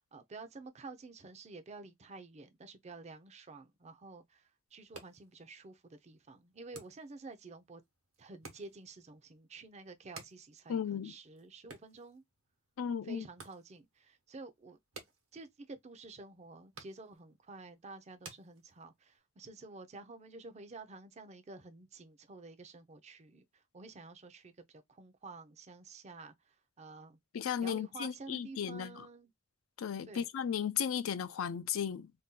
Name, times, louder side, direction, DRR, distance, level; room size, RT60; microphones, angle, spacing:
voice 1, 0.0-4.4 4.7-7.8 8.2-12.2 13.0-14.8 15.3-24.5 24.9-27.2 27.6-29.3 30.1-30.3, right 3 dB, 30° right, 0.5 m, -50 dB
sound 1, 4.7-19.2, right 4 dB, 75° right, 1.0 m, -57 dB
voice 2, 10.7-11.1 12.8-13.3 27.3-29.1 29.8-32.1, left 8 dB, 80° left, 0.4 m, -35 dB
2.7 x 2.2 x 3.6 m
head